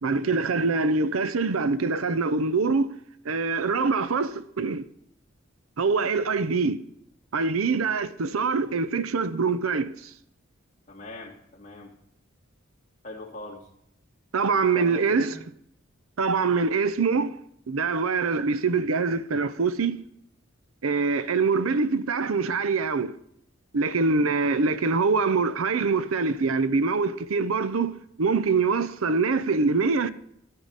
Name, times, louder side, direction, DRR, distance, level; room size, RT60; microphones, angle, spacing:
voice 1, 0.0-2.9 3.2-4.9 5.8-6.8 7.3-10.1 14.3-15.4 16.2-17.3 17.7-19.9 20.8-23.1 23.7-27.9 28.2-30.1, right 4 dB, 85° right, 0.6 m, -24 dB
voice 2, 10.9-11.9 13.0-13.7 14.7-15.4, left 2 dB, 35° left, 2.6 m, -41 dB
12.5 x 9.8 x 4.1 m
head